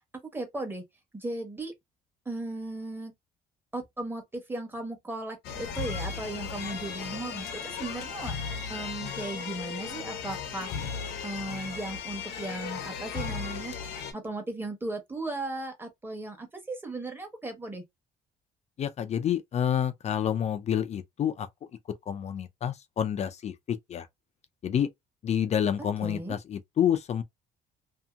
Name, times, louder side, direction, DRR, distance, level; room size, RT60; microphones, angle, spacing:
voice 1, 0.3-0.8 1.1-1.7 2.2-3.1 3.7-8.3 8.7-10.7 11.2-13.7 14.1-17.8 25.8-26.4, right 2 dB, 10° right, 1.1 m, -36 dB
sound 1, 5.4-14.1, left 6 dB, 75° left, 0.8 m, -36 dB
voice 2, 18.8-21.5 22.1-24.1 24.6-24.9 25.2-27.2, left 9 dB, 40° left, 0.4 m, -28 dB
2.8 x 2.6 x 2.3 m
cardioid pair, 110°, 17 cm